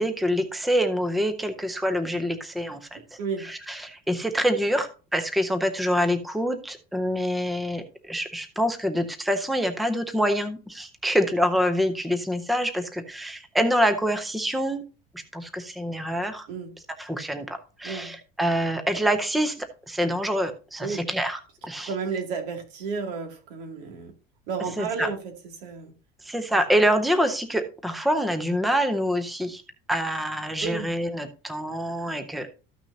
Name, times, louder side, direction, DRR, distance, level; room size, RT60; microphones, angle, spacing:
voice 1, 0.0-3.0 3.4-14.8 15.3-16.5 16.9-21.9 24.8-25.1 26.2-29.6 29.9-32.5, equal, ahead, 8 dB, 0.5 m, -26 dB
voice 2, 2.9-3.5 16.5-16.7 17.8-18.1 20.8-21.1 21.9-24.1 24.5-25.2 25.6-25.9 30.6-30.9, right 5 dB, 85° right, 4 dB, 2.4 m, -32 dB
13.5 x 6.1 x 2.7 m, 0.34 s
cardioid pair, 170°, 20 cm